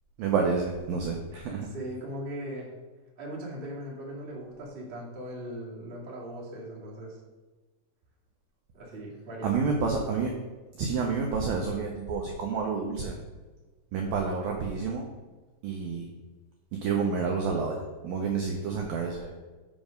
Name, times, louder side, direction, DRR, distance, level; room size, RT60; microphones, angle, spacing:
voice 1, 0.2-1.7 9.4-10.4 10.8-13.2 13.9-15.1 15.6-16.1 16.7-19.4, right 5 dB, 90° right, 1 dB, 2.0 m, -29 dB
voice 2, 1.7-2.7 3.2-7.2 8.7-9.7, right 1 dB, 60° right, -5 dB, 0.5 m, -39 dB
7.6 x 6.1 x 5.1 m, 1.3 s
omnidirectional pair, 5.3 m